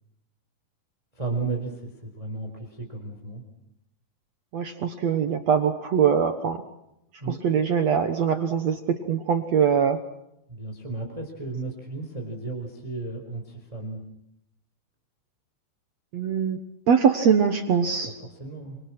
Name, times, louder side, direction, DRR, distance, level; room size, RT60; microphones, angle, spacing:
voice 1, 1.2-3.4 7.2-7.4 10.5-14.0 18.0-18.1 18.4-18.8, right 3 dB, 10° right, 4 dB, 3.7 m, -34 dB
voice 2, 4.5-6.6 7.4-10.0 16.1-16.6 16.9-18.2, right 7 dB, 65° right, 8 dB, 1.7 m, -22 dB
28.0 x 25.5 x 6.2 m, 0.80 s
omnidirectional pair, 4.9 m